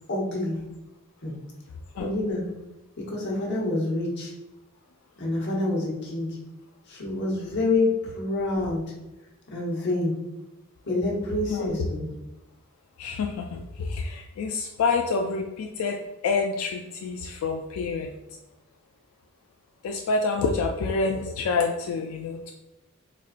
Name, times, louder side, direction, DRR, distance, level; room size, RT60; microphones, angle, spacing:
voice 1, 0.1-0.6 1.2-1.3 2.0-2.5 3.1-4.3 5.2-6.4 6.9-8.8 9.5-10.1 10.8-12.0, left 2 dB, 55° left, -3 dB, 1.0 m, -27 dB
voice 2, 13.0-18.1 19.8-22.5, left 4 dB, 85° left, 4 dB, 0.3 m, -27 dB
4.1 x 2.4 x 2.4 m, 0.98 s
head